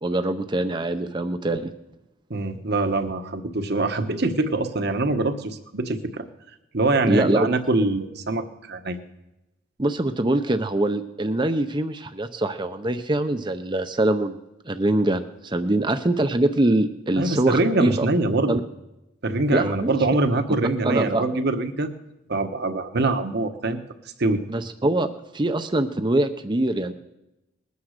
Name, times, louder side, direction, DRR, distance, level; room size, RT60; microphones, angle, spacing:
voice 1, 0.0-1.7 7.0-7.5 9.8-14.4 14.7-18.1 18.5-18.6 19.5-19.9 20.8-21.3 24.5-25.1 25.3-26.9, right 1 dB, 25° right, 8 dB, 0.6 m, -23 dB
voice 2, 2.3-6.3 6.7-9.0 17.2-18.6 19.2-21.9 22.3-23.8 24.2-24.4, right 2 dB, 55° right, 8 dB, 1.2 m, -24 dB
20.5 x 9.5 x 6.6 m, 0.96 s
head